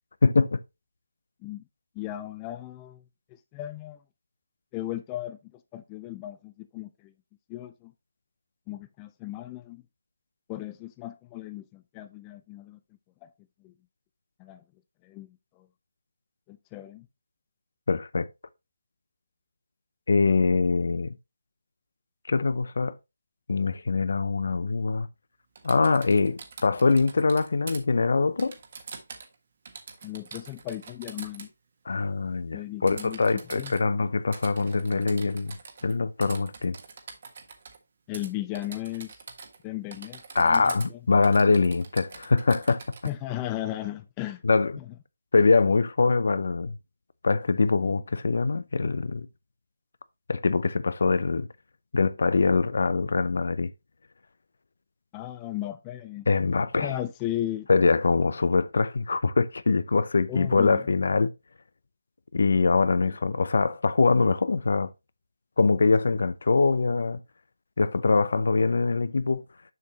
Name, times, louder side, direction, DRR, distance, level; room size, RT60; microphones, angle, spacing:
voice 1, 0.2-0.6 17.9-18.3 20.1-21.1 22.3-23.0 23.5-25.1 25.6-28.6 31.9-35.6 35.8-36.8 40.3-42.8 44.4-44.7 45.3-46.7 47.2-49.3 50.3-51.5 51.9-53.7 56.3-57.0 57.7-61.3 62.3-64.9 65.6-67.2 67.8-69.4, left 4 dB, 65° left, 0.6 m, -23 dB
voice 2, 2.0-3.0 3.5-4.0 4.7-5.4 5.7-7.1 7.5-7.9 8.7-9.8 10.5-12.8 13.2-13.3 13.6-13.7 14.4-14.6 15.0-15.4 16.5-17.1 30.0-31.5 32.5-33.7 38.1-39.2 39.6-41.0 43.1-44.4 44.8-44.9 55.1-56.3 56.8-57.7 60.3-60.8, left 14 dB, 15° left, 0.4 m, -36 dB
Typing, 25.6-27.8 28.4-29.4 29.7-31.5 32.9-33.8 34.3-35.9 36.2-37.8 38.1-38.3 38.5-39.6 39.9-40.9 41.2-43.1, right 5 dB, 45° right, 1.5 m, -44 dB
6.8 x 6.1 x 3.0 m
figure-of-eight pair, 165°, 0 cm